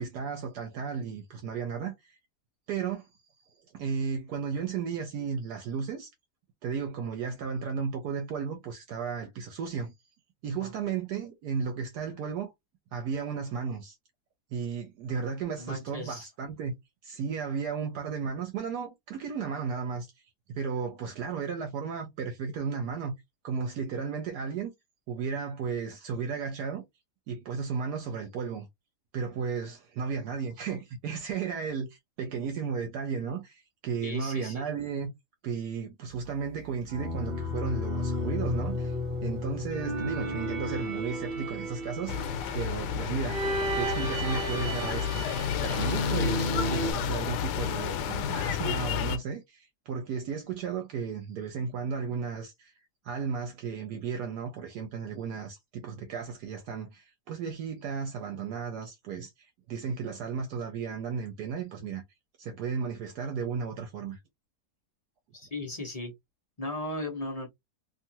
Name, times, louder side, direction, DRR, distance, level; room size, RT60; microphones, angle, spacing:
voice 1, 0.0-2.2 2.7-3.1 3.7-6.1 6.6-9.9 10.4-12.5 12.9-14.0 14.5-16.7 17.0-20.1 20.5-23.2 23.4-24.7 25.1-26.8 27.3-28.7 29.1-35.1 35.4-38.9 39.2-43.4 43.7-45.2 45.6-52.7 53.0-62.0 62.4-64.2, right 6 dB, 75° right, 1.2 m, -34 dB
voice 2, 15.6-16.3 34.0-34.6 65.3-66.1 66.6-67.5, left 2 dB, 30° left, 0.8 m, -36 dB
sound 1, 36.9-46.9, equal, 45° right, 0.9 m, -33 dB
sound 2, 42.1-49.2, left 9 dB, 85° left, 1.2 m, -31 dB
2.8 x 2.4 x 2.7 m
omnidirectional pair, 1.7 m